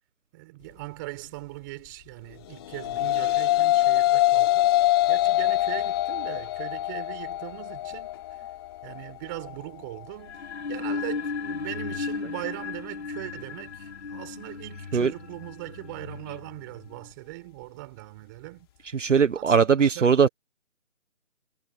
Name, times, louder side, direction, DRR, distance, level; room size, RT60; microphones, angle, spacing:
voice 1, 0.3-4.7 5.1-8.1 8.8-18.7 19.3-20.3, right 22 dB, 15° right, 4.5 m, -40 dB
sound 1, 2.5-11.7, left 15 dB, 20° left, 3.7 m, -25 dB
sound 2, 10.2-17.1, left 5 dB, 50° left, 2.8 m, -36 dB
voice 2, 18.9-20.3, right 6 dB, 60° right, 1.4 m, -20 dB
figure-of-eight pair, 165°, 41 cm